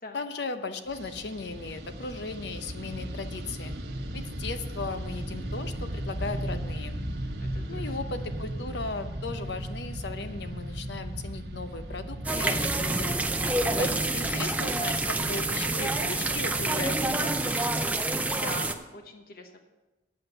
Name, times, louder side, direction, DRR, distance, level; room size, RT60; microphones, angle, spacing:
voice 1, 0.1-3.7 4.1-7.0 7.7-13.1 13.8-17.7, left 3 dB, 70° left, 9 dB, 0.7 m, -37 dB
Fixed-wing aircraft airplane, 0.9-18.3, right 1 dB, 65° right, 1.1 m, -37 dB
voice 2, 7.4-7.8 13.6-14.0 18.2-19.6, left 2 dB, 50° left, 4 dB, 1.1 m, -42 dB
sound 1, 12.2-18.7, right 2 dB, 10° right, 0.5 m, -27 dB
9.5 x 7.9 x 6.7 m, 1.1 s
head